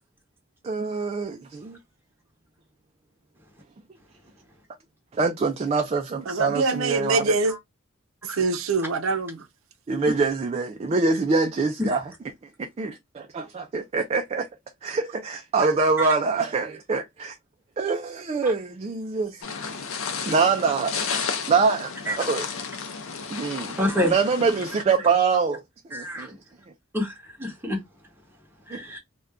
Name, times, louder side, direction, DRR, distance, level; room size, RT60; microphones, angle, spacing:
voice 1, 0.9-1.8 5.1-7.3 9.9-12.0 12.6-14.5 14.8-17.4 17.8-19.4 20.3-21.0 21.5-22.5 23.3-23.8 24.0-25.6 25.9-26.3 28.7-28.8, right 4 dB, 30° right, 0.3 m, -24 dB
voice 2, 6.3-7.6 8.2-9.5, right 3 dB, 90° right, 0.5 m, -24 dB
sound 1, 19.4-24.8, left 5 dB, 90° left, 0.6 m, -32 dB
voice 3, 23.8-24.1 25.9-26.3 26.9-27.8 28.7-29.0, left 1 dB, 10° right, 0.9 m, -27 dB
2.5 x 2.2 x 3.4 m
head